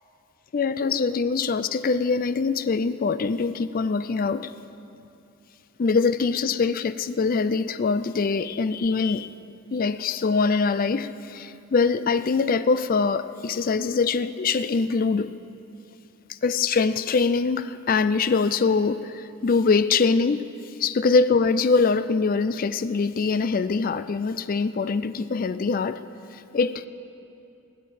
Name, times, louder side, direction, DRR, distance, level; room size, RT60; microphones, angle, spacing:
voice 1, 0.5-4.5 5.8-9.3 9.7-15.3 16.4-20.4 20.8-26.0 26.5-26.9, left 4 dB, 40° left, 13 dB, 0.4 m, -23 dB
18.5 x 6.7 x 9.1 m, 2.8 s
head